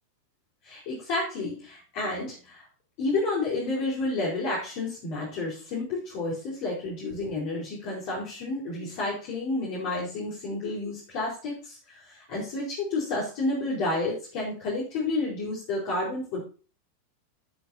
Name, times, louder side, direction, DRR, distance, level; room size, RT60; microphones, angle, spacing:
voice 1, 0.6-2.6 3.0-16.5, left 2 dB, 45° left, -4 dB, 4.4 m, -30 dB
16.0 x 6.8 x 2.8 m, 0.37 s
figure-of-eight pair, 90°, 0 cm